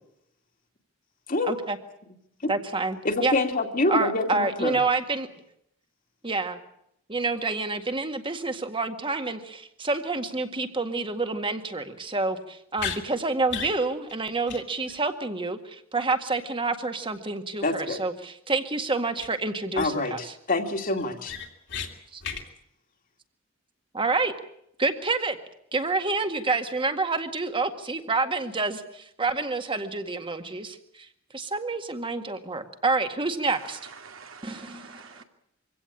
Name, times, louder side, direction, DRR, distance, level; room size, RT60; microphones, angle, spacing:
voice 1, 2.5-3.3 3.9-5.3 6.2-6.6 7.1-20.2 22.1-22.2 23.9-24.3 24.8-25.4 25.7-31.1 31.3-33.8 34.4-35.0, right 3 dB, 25° right, 7 dB, 1.9 m, -28 dB
voice 2, 3.0-4.8 17.6-18.0 19.8-21.3, left 2 dB, 45° left, 4 dB, 2.5 m, -26 dB
sound 1, 12.8-13.0 13.5-13.8 14.1-14.2 14.5-14.6 14.9-15.0 19.2-19.3 19.7-20.1 20.5-20.6 21.0-21.9 22.2-22.4, left 7 dB, 60° left, 2.9 m, -34 dB
voice 3, 33.5-35.2, right 5 dB, 75° right, 4 dB, 2.8 m, -46 dB
24.5 x 17.0 x 8.6 m, 0.75 s
head